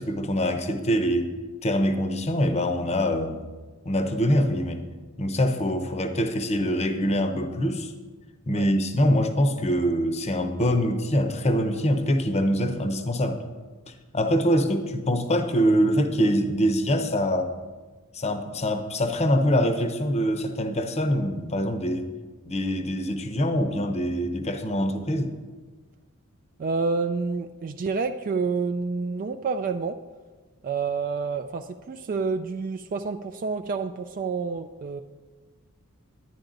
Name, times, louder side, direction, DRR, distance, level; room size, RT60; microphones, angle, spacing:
voice 1, 0.0-1.3 1.6-3.4 3.9-4.8 5.2-7.9 8.5-13.4 14.1-17.5 18.1-22.1 22.5-25.3, equal, 30° left, 7 dB, 0.7 m, -24 dB
voice 2, 26.6-30.0 30.6-35.0, right 4 dB, 40° right, 8 dB, 0.3 m, -28 dB
10.5 x 10.0 x 3.9 m, 1.4 s
head